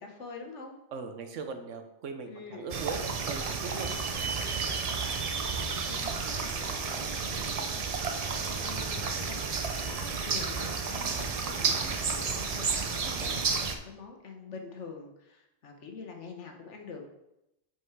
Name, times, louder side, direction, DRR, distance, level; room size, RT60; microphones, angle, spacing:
voice 1, 0.0-0.8 2.3-2.7 4.9-5.3 5.9-9.4 9.9-17.0, left 4 dB, 75° left, 3 dB, 1.4 m, -46 dB
voice 2, 0.9-3.9 4.2-5.0, right 5 dB, 90° right, 7 dB, 1.2 m, -40 dB
sound 1, 2.7-13.7, right 5 dB, 45° right, 0.5 m, -31 dB
5.7 x 5.3 x 4.7 m, 0.88 s
omnidirectional pair, 1.2 m